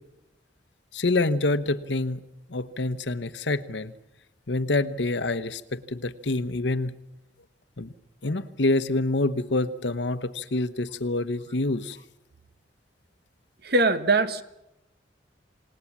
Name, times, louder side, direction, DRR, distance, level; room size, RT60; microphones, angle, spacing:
voice 1, 0.9-2.2 2.5-3.9 4.5-6.9 7.8-7.9 8.2-12.0, left 2 dB, 75° left, 13 dB, 1.1 m, -26 dB
voice 2, 13.6-14.4, right 2 dB, 60° right, 12 dB, 1.4 m, -21 dB
28.0 x 19.0 x 7.4 m, 0.90 s
head